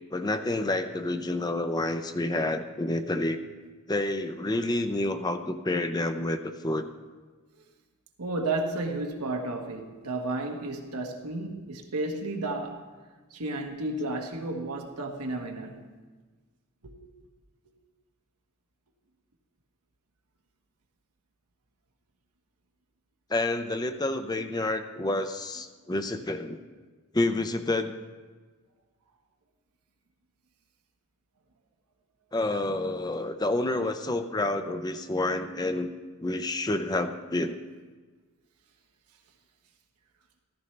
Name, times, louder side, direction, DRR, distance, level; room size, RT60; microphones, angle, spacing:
voice 1, 0.1-3.4 3.9-6.9 23.3-26.6 27.1-27.9 32.3-35.9 36.2-37.6, left 2 dB, 20° left, 0.5 m, -29 dB
voice 2, 8.2-12.9 13.3-15.9 16.8-16.9, right 2 dB, 90° right, 1.3 m, -32 dB
14.5 x 14.0 x 3.3 m
head